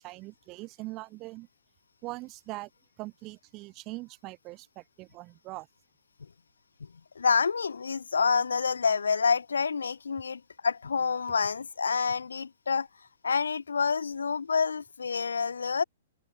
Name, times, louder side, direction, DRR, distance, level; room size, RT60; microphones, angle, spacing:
voice 1, 0.0-1.5 2.0-2.7 3.0-5.7, right 21 dB, 30° right, 1.6 m, -41 dB
voice 2, 7.2-12.9 13.2-15.8, left 5 dB, 75° left, 0.7 m, -28 dB
figure-of-eight pair, 120°, 0 cm